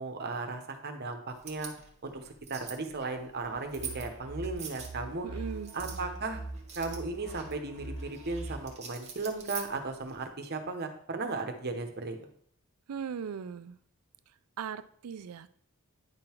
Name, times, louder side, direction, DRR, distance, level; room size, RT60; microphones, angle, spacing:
voice 1, 0.0-1.7 2.0-2.2 2.5-5.3 5.7-6.4 6.8-12.2, right 3 dB, 50° right, 5 dB, 1.0 m, -36 dB
sound 1, 1.3-10.3, right 6 dB, 30° right, 1.3 m, -47 dB
sound 2, 3.5-8.7, right 2 dB, 85° left, 3.1 m, -42 dB
voice 2, 5.2-5.7 12.9-13.8 14.6-15.5, right 7 dB, 85° right, 13 dB, 0.4 m, -38 dB
9.7 x 3.8 x 4.5 m, 0.63 s
head